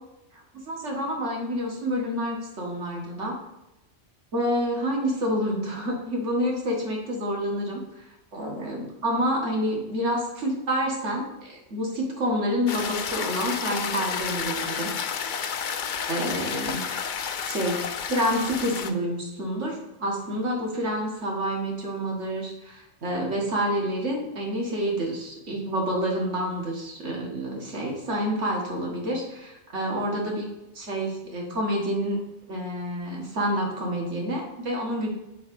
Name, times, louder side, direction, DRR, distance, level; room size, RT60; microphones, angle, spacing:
voice 1, 0.3-3.4 4.3-8.1 8.3-14.9 16.1-16.9 17.5-30.5 30.7-32.2 32.5-35.1, equal, 85° right, -1 dB, 1.9 m, -28 dB
sound 1, 12.7-18.9, left 7 dB, 55° left, 0.6 m, -31 dB
5.5 x 4.8 x 5.3 m, 0.96 s
omnidirectional pair, 1.2 m